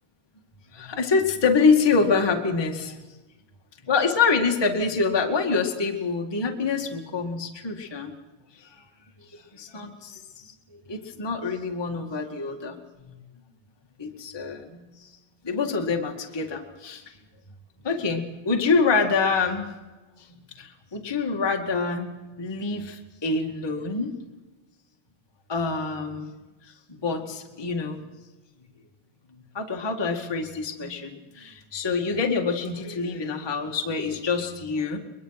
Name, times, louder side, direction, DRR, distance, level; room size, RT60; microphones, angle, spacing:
voice 1, 0.7-3.0 3.8-8.1 8.6-8.7 9.3-13.2 14.0-15.1 15.4-17.0 17.8-19.7 20.2-20.3 20.6-22.1 22.4-24.1 25.5-26.3 26.6-28.0 29.5-35.0, left 4 dB, 15° left, 2 dB, 0.8 m, -26 dB
22.5 x 22.5 x 6.0 m, 1.2 s
omnidirectional pair, 4.2 m